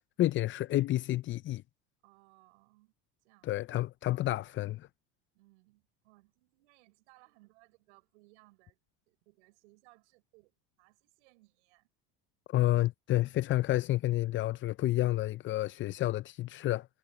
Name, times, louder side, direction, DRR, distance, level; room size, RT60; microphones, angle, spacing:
voice 1, 0.2-1.6 3.4-4.9 12.5-16.9, left 15 dB, 35° left, 0.4 m, -30 dB
voice 2, 2.0-2.9 3.2-3.8 5.3-8.8 9.1-11.9 12.6-12.7, right 23 dB, 80° right, 4.9 m, -64 dB
supercardioid pair, 95°, 34 cm